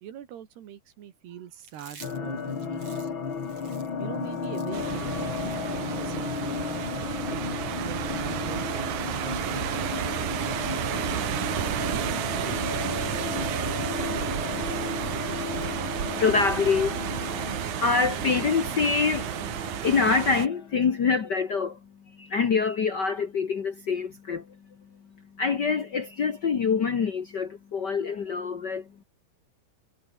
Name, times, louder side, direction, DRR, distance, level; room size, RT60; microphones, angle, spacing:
voice 1, 0.0-3.1 4.0-6.6 7.3-10.3 12.3-12.6 13.2-13.9, right 10 dB, 80° right, 4.2 m, -42 dB
Chewing mastication, 1.6-7.1, right 5 dB, 40° right, 4.7 m, -52 dB
sound 1, 2.0-20.9, left 6 dB, 35° left, 2.7 m, -34 dB
sound 2, 4.7-20.5, right 12 dB, 60° right, 2.3 m, -32 dB
voice 2, 15.6-21.8 22.1-24.6 25.4-29.0, left 5 dB, 70° left, 1.0 m, -26 dB
omnidirectional pair, 4.6 m